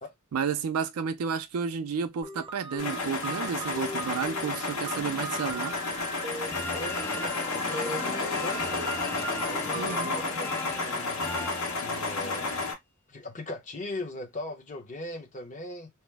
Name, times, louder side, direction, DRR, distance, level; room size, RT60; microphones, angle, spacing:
voice 1, 0.3-5.7 9.7-10.1, right 6 dB, 90° right, 0.4 m, -31 dB
sound 1, 2.2-10.2, right 2 dB, 25° right, 0.6 m, -39 dB
sound 2, 2.8-12.7, left 3 dB, 75° left, 1.2 m, -32 dB
sound 3, 6.5-12.2, left 2 dB, 10° left, 0.3 m, -39 dB
voice 2, 6.7-8.9 9.4-11.2 11.8-12.7 13.1-15.9, left 2 dB, 35° left, 0.8 m, -39 dB
2.9 x 2.0 x 3.3 m
head